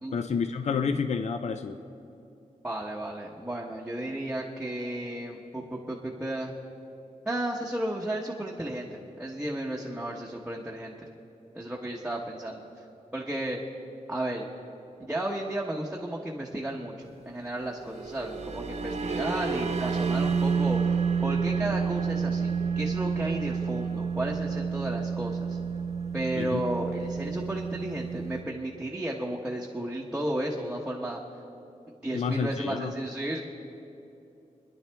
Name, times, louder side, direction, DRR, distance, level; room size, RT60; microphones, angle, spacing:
voice 1, 0.1-1.8 26.4-26.6 32.1-32.9, left 5 dB, 55° left, 8 dB, 0.5 m, -29 dB
voice 2, 2.6-6.5 7.2-11.1 11.5-12.6 13.1-13.6 14.1-14.5 15.0-20.9 21.2-25.6 26.1-31.2 32.0-33.4, right 1 dB, 5° right, -3 dB, 1.0 m, -33 dB
sound 1, 17.7-28.4, right 5 dB, 55° right, 1.0 m, -29 dB
28.5 x 10.5 x 3.4 m, 2.8 s
wide cardioid pair, 165°, 14 cm